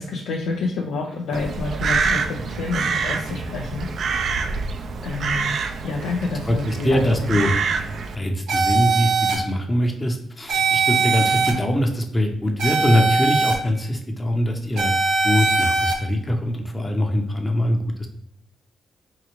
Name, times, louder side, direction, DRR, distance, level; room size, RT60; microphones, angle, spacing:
voice 1, 0.0-4.5 5.0-7.4, left 3 dB, 90° left, 0 dB, 0.5 m, -29 dB
Crow, 1.3-8.2, right 5 dB, 60° right, 0.3 m, -26 dB
voice 2, 6.5-7.5 8.1-15.0 15.2-18.1, equal, 20° left, 3 dB, 0.7 m, -22 dB
sound 1, 8.5-9.4 10.5-11.5 12.6-13.5 14.8-15.9, right 4 dB, 85° right, 0.9 m, -20 dB
4.6 x 2.5 x 3.0 m, 0.77 s
cardioid pair, 75°, 0 cm